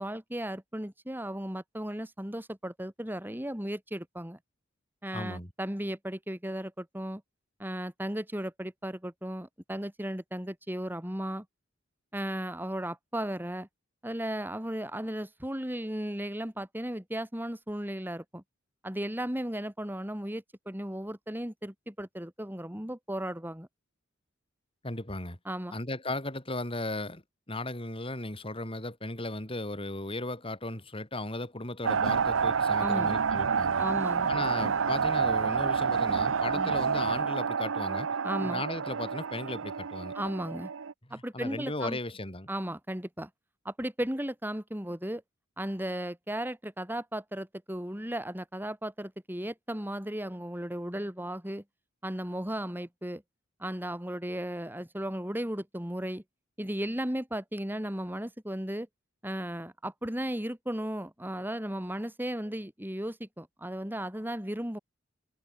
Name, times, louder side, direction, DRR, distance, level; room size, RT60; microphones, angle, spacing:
voice 1, 0.0-4.4 5.0-7.2 7.6-11.4 12.1-13.7 14.0-18.4 18.8-23.7 25.4-25.7 32.8-33.1 33.8-34.3 36.6-36.7 38.2-38.6 40.1-40.7 41.1-42.0 42.5-43.3 43.6-45.2 45.6-51.6 52.0-53.2 53.6-56.2 56.6-58.9 59.2-64.8, right 1 dB, 10° right, 3.3 m, -35 dB
voice 2, 5.1-5.5 24.8-25.4 25.7-27.2 27.5-33.9 34.3-38.1 38.4-40.1 41.1-42.5, left 2 dB, 25° left, 4.7 m, -36 dB
sound 1, 31.8-40.9, right 6 dB, 80° right, 0.7 m, -28 dB
head